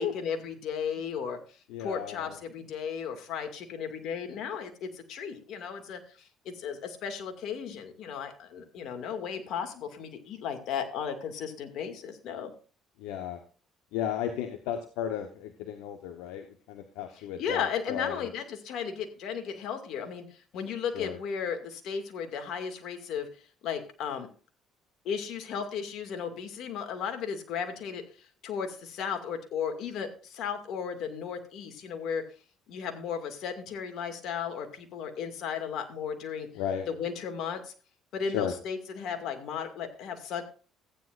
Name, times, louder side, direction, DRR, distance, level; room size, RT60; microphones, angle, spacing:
voice 1, 0.0-1.4 1.8-12.5 17.1-23.3 23.6-24.3 25.0-32.3 32.7-36.5 36.9-37.7 38.1-40.4, left 7 dB, 65° left, 6 dB, 2.3 m, -35 dB
voice 2, 1.7-2.3 13.0-13.4 13.9-18.3 20.9-21.2 36.5-36.9 38.3-38.5, left 9 dB, 85° left, 6 dB, 1.1 m, -34 dB
15.0 x 9.8 x 2.6 m, 0.38 s
supercardioid pair, 75°, 0 cm